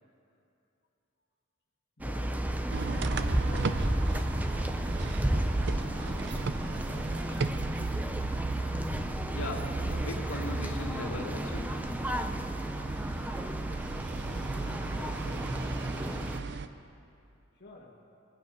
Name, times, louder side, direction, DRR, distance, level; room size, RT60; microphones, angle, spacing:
voice 1, 2.0-4.5 5.3-7.3 14.2-16.6 17.5-18.0, left 2 dB, 55° left, -4 dB, 1.6 m, -50 dB
sound 1, 2.0-16.4, right 1 dB, 5° right, 0.6 m, -33 dB
sound 2, 2.7-16.7, right 3 dB, 55° right, 0.6 m, -35 dB
voice 2, 9.3-11.7, left 2 dB, 75° left, -1 dB, 2.2 m, -38 dB
22.0 x 9.3 x 5.3 m, 2.6 s
head